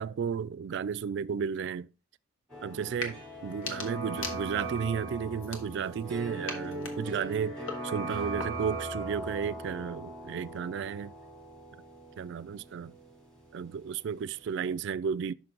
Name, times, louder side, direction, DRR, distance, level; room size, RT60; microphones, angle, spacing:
voice 1, 0.0-1.9 2.6-11.1 12.2-12.9 13.5-15.3, right 6 dB, 60° right, 0.3 m, -33 dB
sound 1, 2.5-14.2 14.5-14.6, right 2 dB, 5° left, 2.0 m, -40 dB
sound 2, 2.9-3.2 3.5-4.8 5.4-6.1 6.5-8.8, left 3 dB, 80° left, 1.4 m, -42 dB
6.0 x 5.8 x 3.8 m
head